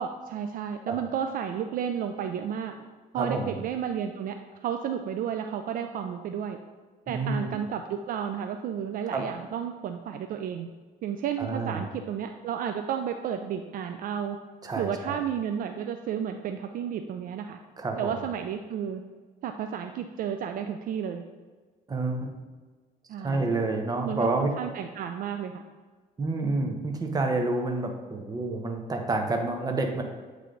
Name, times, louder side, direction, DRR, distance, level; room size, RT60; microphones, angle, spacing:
voice 1, 0.0-2.7 3.1-4.4 4.6-6.6 7.1-10.7 11.0-14.4 14.8-17.6 18.0-19.0 19.4-21.2 23.1-23.5 24.0-25.5, right 8 dB, 55° right, 6 dB, 0.4 m, -32 dB
voice 2, 3.1-3.5 7.1-7.6 9.1-9.2 11.4-11.8 14.6-15.2 17.8-18.1 21.9-22.3 23.2-24.5 26.2-30.0, right 2 dB, 20° right, 3 dB, 0.8 m, -29 dB
8.1 x 3.3 x 3.8 m, 1.4 s
cardioid pair, 110°, 17 cm